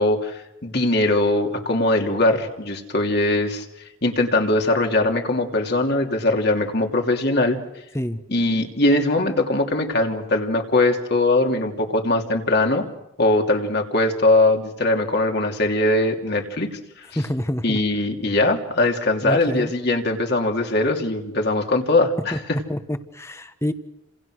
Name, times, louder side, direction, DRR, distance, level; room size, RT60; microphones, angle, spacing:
voice 1, 0.0-3.6 4.0-7.6 8.3-12.8 13.2-17.1 17.6-22.4, left 2 dB, 50° left, 2 dB, 3.0 m, -21 dB
voice 2, 17.1-17.8 19.2-19.7 22.3-22.4 22.7-23.7, equal, 15° left, 9 dB, 1.3 m, -27 dB
29.5 x 27.5 x 6.4 m, 0.89 s
head